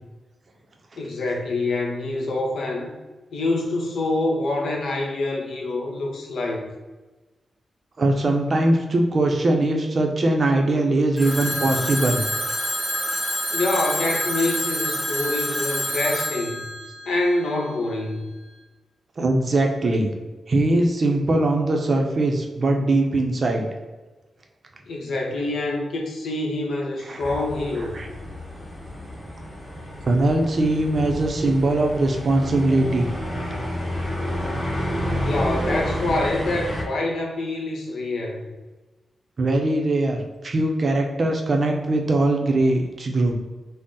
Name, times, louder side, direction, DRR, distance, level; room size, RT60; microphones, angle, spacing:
voice 1, 1.0-2.9 3.3-6.6 13.5-16.7 17.0-18.2 24.9-28.0 35.2-38.4, left 2 dB, 85° left, 0 dB, 0.7 m, -26 dB
voice 2, 8.0-12.2 19.2-20.1 20.5-23.7 27.1-27.3 27.9-28.1 30.0-33.1 39.4-40.2 40.4-43.4, right 2 dB, 40° right, 2 dB, 0.5 m, -21 dB
Telephone, 11.2-18.0, equal, 5° left, 1.2 m, -27 dB
sound 1, 27.2-36.8, equal, 25° left, 1.0 m, -30 dB
3.9 x 2.0 x 3.6 m, 1.2 s
wide cardioid pair, 160°, 0 cm